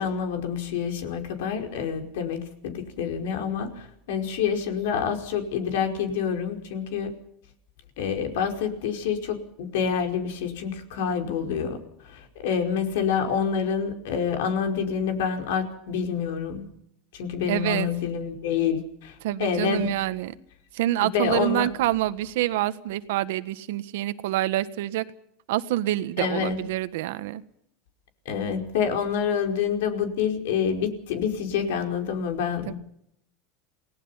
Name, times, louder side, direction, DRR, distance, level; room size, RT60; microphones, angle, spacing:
voice 1, 0.0-7.1 8.0-11.8 12.0-16.6 17.1-19.9 21.1-21.7 26.2-26.6 28.2-32.7, left 7 dB, 80° left, 5.0 m, -27 dB
voice 2, 17.5-17.9 19.2-20.3 20.7-25.0 25.5-27.4 32.7-32.8, right 14 dB, 75° right, 1.5 m, -26 dB
28.5 x 19.0 x 5.8 m
supercardioid pair, 155°, 0 cm